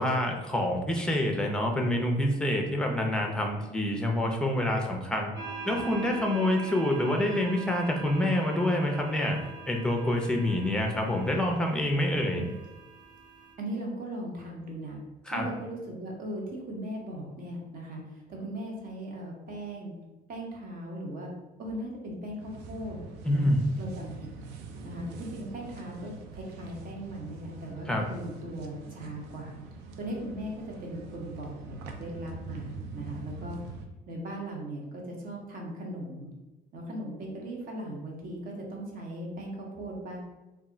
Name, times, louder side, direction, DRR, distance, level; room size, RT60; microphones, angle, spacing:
voice 1, 0.0-5.3 5.6-9.4 9.7-12.4 15.3-15.5 23.2-23.7 27.9-28.1, left 1 dB, 5° left, 2 dB, 0.5 m, -27 dB
sound 1, 5.4-13.5, right 5 dB, 25° right, 0.8 m, -43 dB
voice 2, 13.6-15.0 15.3-19.9 20.3-21.3 21.6-23.0 23.3-23.4 23.8-24.1 24.8-29.6 30.0-33.6 34.1-36.3 36.7-40.2, right 1 dB, 55° right, -1 dB, 0.9 m, -38 dB
sound 2, 22.4-33.9, right 4 dB, 85° right, 0.4 m, -44 dB
2.3 x 2.1 x 3.8 m, 1.1 s
cardioid pair, 110°, 17 cm